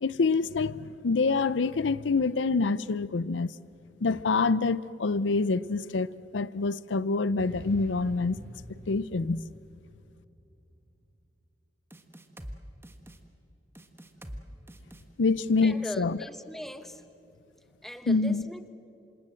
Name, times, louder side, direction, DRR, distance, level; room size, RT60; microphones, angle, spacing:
voice 1, 0.0-3.6 4.0-6.1 6.3-8.4 8.9-9.4 15.2-16.2 18.1-18.5, left 4 dB, 85° left, 0.6 m, -26 dB
sound 1, 7.4-10.9, equal, 60° right, 4.1 m, -46 dB
sound 2, 11.9-12.6 12.8-13.2 13.7-14.4 14.7-15.0, equal, 15° right, 1.4 m, -43 dB
voice 2, 15.6-17.1 17.8-18.7, equal, ahead, 1.1 m, -40 dB
27.5 x 26.5 x 7.7 m
head